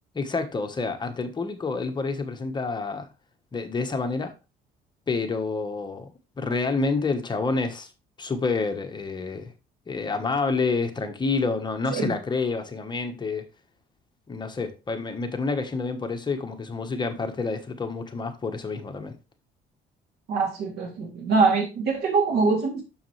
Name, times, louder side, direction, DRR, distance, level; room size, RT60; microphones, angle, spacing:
voice 1, 0.1-3.1 3.5-4.3 5.1-6.1 6.4-7.9 8.2-9.5 9.9-13.5 14.3-19.1, left 4 dB, 25° left, 1.2 m, -28 dB
voice 2, 20.3-22.8, right 4 dB, 70° right, 2.9 m, -23 dB
6.9 x 6.5 x 3.2 m
cardioid pair, 110°, 17 cm